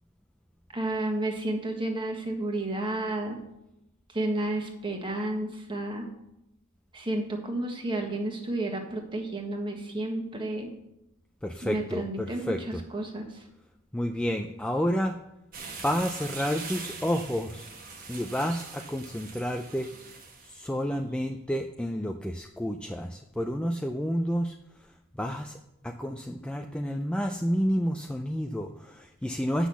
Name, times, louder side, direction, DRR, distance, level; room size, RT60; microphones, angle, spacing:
voice 1, 0.7-3.4 4.1-6.1 6.9-10.7 11.6-13.4, right 1 dB, 20° right, 2 dB, 1.4 m, -31 dB
voice 2, 11.4-12.8 13.9-15.2 15.8-17.7 18.1-19.9 20.4-24.6 25.2-25.6 25.8-29.7, equal, 5° left, 4 dB, 0.3 m, -30 dB
sound 1, 15.5-20.6, right 4 dB, 40° right, 1.2 m, -42 dB
8.0 x 6.1 x 7.0 m, 0.86 s
head